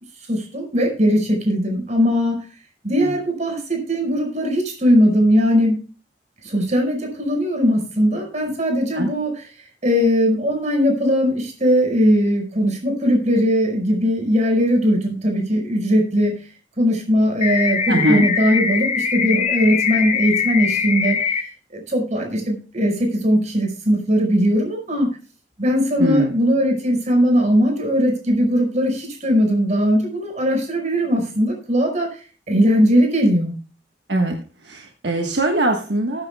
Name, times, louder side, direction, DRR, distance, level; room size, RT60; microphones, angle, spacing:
voice 1, 0.3-2.4 2.8-5.8 6.4-16.4 16.8-21.3 21.7-25.1 25.6-32.1 32.5-33.5, equal, 45° right, 2 dB, 5.1 m, -19 dB
sound 1, 17.4-21.4, left 6 dB, 40° left, 1.3 m, -22 dB
voice 2, 17.9-18.3 26.0-26.3 34.1-34.4 34.6-36.3, right 1 dB, 75° right, 2 dB, 1.4 m, -21 dB
19.5 x 9.7 x 2.3 m, 0.36 s
head